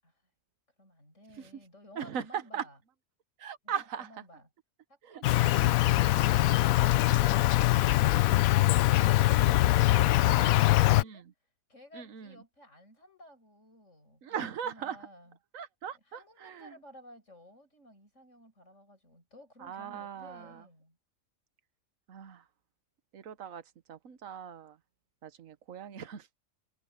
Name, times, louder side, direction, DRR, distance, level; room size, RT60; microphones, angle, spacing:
voice 1, 0.8-2.8 3.6-3.7 4.0-4.4 4.9-5.9 11.7-15.4 16.1-21.0, equal, 60° left, 7.4 m, -54 dB
voice 2, 1.9-2.7 3.4-4.2 5.0-5.7 11.0-11.3 11.9-12.4 14.2-15.1 15.5-16.8 19.6-20.7 22.1-22.5 23.1-24.8 25.2-26.3, right 8 dB, 75° right, 1.4 m, -39 dB
Insect, 5.2-11.0, left 16 dB, 90° left, 1.0 m, -23 dB
omnidirectional pair, 1.4 m